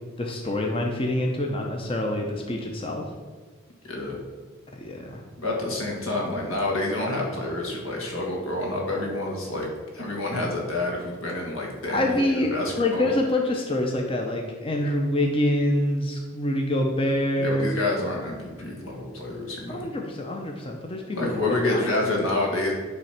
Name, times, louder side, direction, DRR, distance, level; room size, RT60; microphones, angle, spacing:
voice 1, 0.2-3.1 4.8-5.2 11.9-17.7 19.7-21.3 21.7-22.3, left 1 dB, 25° left, 1 dB, 0.6 m, -26 dB
voice 2, 3.8-4.2 5.4-13.1 17.4-19.9 21.1-22.7, left 2 dB, 85° left, -1 dB, 1.7 m, -28 dB
9.4 x 3.2 x 5.8 m, 1.5 s
head